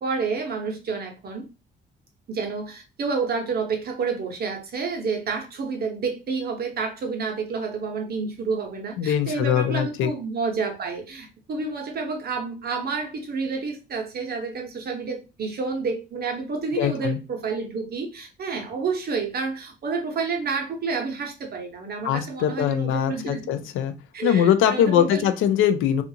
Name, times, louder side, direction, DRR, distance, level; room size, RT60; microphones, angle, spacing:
voice 1, 0.0-1.4 2.3-23.5 24.1-25.3, right 4 dB, 50° right, 3 dB, 0.9 m, -29 dB
voice 2, 9.0-10.1 16.8-17.2 22.0-23.9 24.2-26.0, left 9 dB, 85° left, 10 dB, 0.4 m, -22 dB
2.5 x 2.4 x 2.7 m, 0.30 s
cardioid pair, 90°, 20 cm